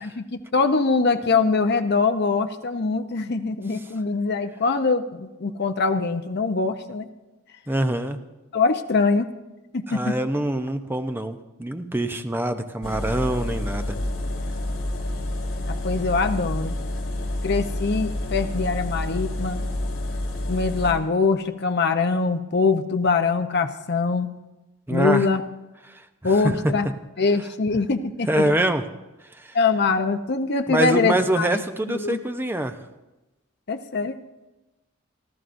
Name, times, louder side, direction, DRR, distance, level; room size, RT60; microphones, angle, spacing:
voice 1, 0.0-7.1 8.5-9.3 9.7-10.2 15.7-16.8 17.4-19.6 20.5-24.3 24.9-25.4 26.2-26.9 27.2-28.5 29.5-31.5 31.9-32.2 33.7-34.2, left 4 dB, 50° left, 7 dB, 0.7 m, -23 dB
voice 2, 7.7-8.2 9.9-14.0 24.9-25.3 25.9-26.0 26.4-26.7 28.3-28.8 29.3-29.6 30.7-32.8, right 1 dB, 10° right, 7 dB, 0.6 m, -24 dB
sound 1, 12.8-20.9, left 1 dB, 75° left, 4.2 m, -28 dB
28.0 x 12.5 x 2.6 m, 1.0 s
head